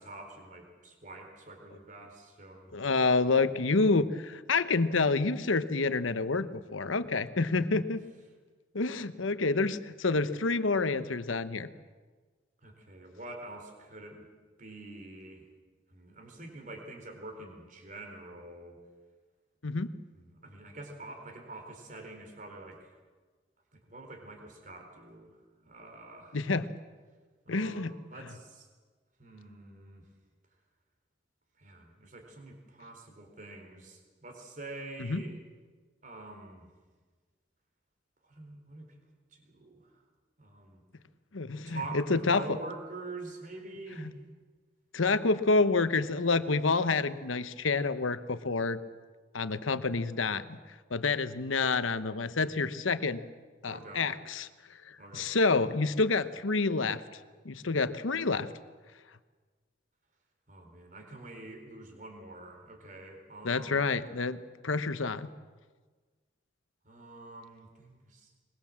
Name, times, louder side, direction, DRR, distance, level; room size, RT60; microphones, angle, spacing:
voice 1, 0.0-2.8 6.8-6.9 12.6-14.2 14.6-15.4 15.9-18.8 20.2-22.9 23.7-25.4 25.6-26.4 27.5-28.7 29.2-30.0 31.6-35.4 36.0-36.7 38.2-38.9 39.3-39.9 40.4-40.8 41.7-44.1 53.6-54.0 55.0-55.4 60.5-63.8 66.8-68.3, right 2 dB, 40° right, 4 dB, 4.0 m, -46 dB
voice 2, 2.7-8.0 8.7-11.7 19.6-19.9 26.3-26.7 27.5-27.9 35.0-35.2 41.3-42.4 44.0-44.1 44.9-48.8 49.3-50.6 50.9-53.2 53.6-54.5 54.8-57.0 57.4-58.5 63.4-65.3, left 3 dB, 90° left, 12 dB, 1.0 m, -28 dB
22.5 x 22.0 x 7.5 m, 1.4 s
head